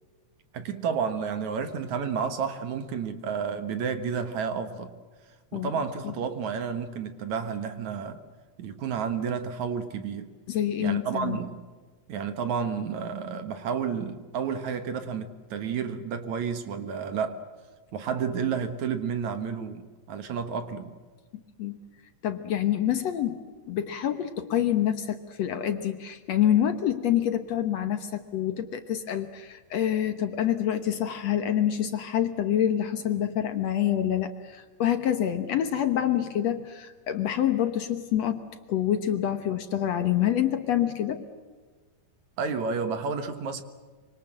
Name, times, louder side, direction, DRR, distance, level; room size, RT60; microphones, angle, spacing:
voice 1, 0.5-4.9 5.5-8.2 8.6-10.3 10.8-11.6 12.1-17.4 17.9-20.9 42.4-43.6, right 6 dB, 65° right, 9 dB, 2.7 m, -31 dB
voice 2, 10.5-11.4 21.3-21.8 22.2-41.3, left 10 dB, 60° left, 9 dB, 2.0 m, -27 dB
25.5 x 25.0 x 7.7 m, 1.5 s
omnidirectional pair, 3.8 m